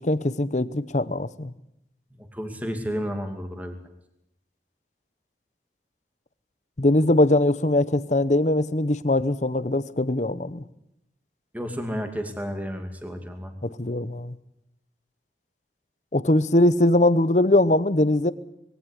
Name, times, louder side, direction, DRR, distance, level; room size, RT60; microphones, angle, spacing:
voice 1, 0.0-1.5 6.8-10.6 13.6-14.3 16.1-18.3, left 1 dB, 40° left, 15 dB, 0.9 m, -21 dB
voice 2, 2.3-3.7 11.5-13.5, equal, 10° right, 5 dB, 2.5 m, -31 dB
21.5 x 17.0 x 9.9 m, 0.81 s
head